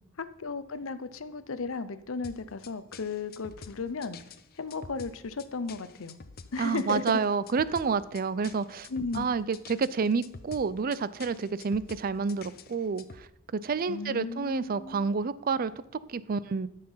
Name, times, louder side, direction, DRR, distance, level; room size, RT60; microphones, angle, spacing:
voice 1, 0.2-4.2 4.6-6.2 6.5-7.2 8.9-9.3 13.9-15.1, left 4 dB, 80° left, 13 dB, 0.7 m, -35 dB
sound 1, 2.2-13.3, left 5 dB, 50° left, 0.7 m, -48 dB
voice 2, 6.6-8.9 9.1-13.3 13.5-15.7 16.1-16.7, right 5 dB, 45° right, 17 dB, 0.4 m, -29 dB
12.5 x 6.7 x 5.6 m, 0.83 s
head